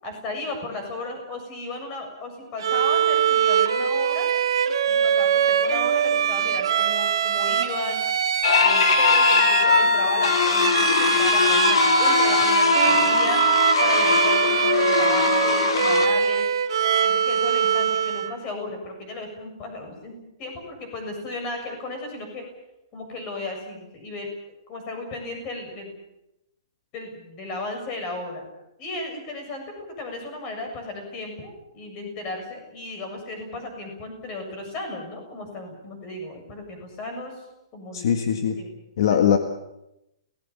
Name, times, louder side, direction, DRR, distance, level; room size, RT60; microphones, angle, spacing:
voice 1, 0.0-4.3 4.9-8.0 8.6-13.4 13.8-16.5 17.0-22.4 22.9-25.9 26.9-28.5 28.8-37.3 37.7-38.1 38.6-38.7 39.1-39.2, left 2 dB, 25° left, 5 dB, 7.2 m, -35 dB
Bowed string instrument, 2.6-18.4, right 8 dB, 60° right, 2.1 m, -23 dB
sound 1, 8.4-16.1, left 4 dB, 80° left, 2.5 m, -20 dB
voice 2, 37.9-38.6 39.0-39.4, left 8 dB, 55° left, 6 dB, 1.8 m, -21 dB
29.0 x 19.0 x 7.2 m, 0.90 s
hypercardioid pair, 165°, 3 cm